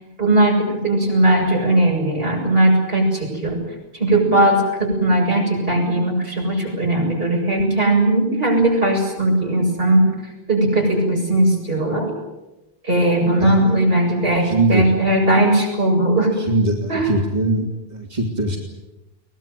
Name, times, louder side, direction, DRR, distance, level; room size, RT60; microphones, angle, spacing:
voice 1, 0.2-3.6 3.9-10.1 10.5-12.1 12.8-16.3 16.9-17.1, right 1 dB, 65° right, -1 dB, 7.8 m, -18 dB
voice 2, 14.4-14.9 16.5-17.7 17.9-18.6, right 2 dB, 45° right, 1 dB, 3.2 m, -21 dB
23.0 x 19.5 x 9.3 m, 1.0 s
omnidirectional pair, 1.0 m